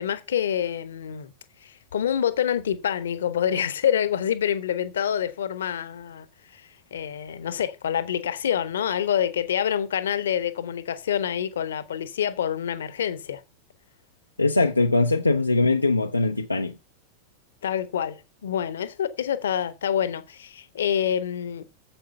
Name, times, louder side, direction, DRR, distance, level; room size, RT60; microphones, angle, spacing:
voice 1, 0.0-1.3 1.6-6.3 6.5-13.4 17.6-21.6, left 9 dB, 65° left, 1.0 m, -27 dB
voice 2, 14.4-16.8, left 3 dB, 85° left, 0.7 m, -21 dB
8.9 x 7.6 x 5.4 m
figure-of-eight pair, 90°, 0 cm